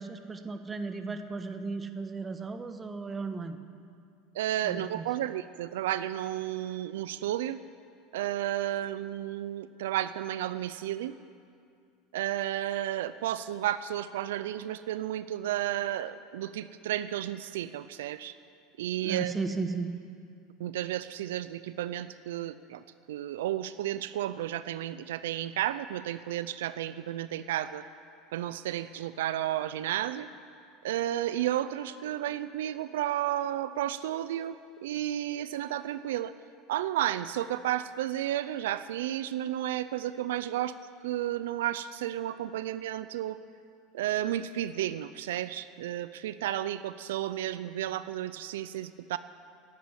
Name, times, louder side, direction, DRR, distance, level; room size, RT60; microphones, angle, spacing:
voice 1, 0.0-3.6 4.6-5.0 19.0-20.0, right 4 dB, 20° right, 8 dB, 1.2 m, -35 dB
voice 2, 4.3-7.6 8.1-11.1 12.1-18.3 18.8-19.3 20.6-27.8 28.3-30.3 30.8-34.6 34.8-36.3 36.7-40.8 41.0-43.4 43.9-49.2, right 12 dB, 85° right, 13 dB, 0.4 m, -32 dB
12.5 x 9.4 x 9.9 m, 2.3 s
supercardioid pair, 110°, 0 cm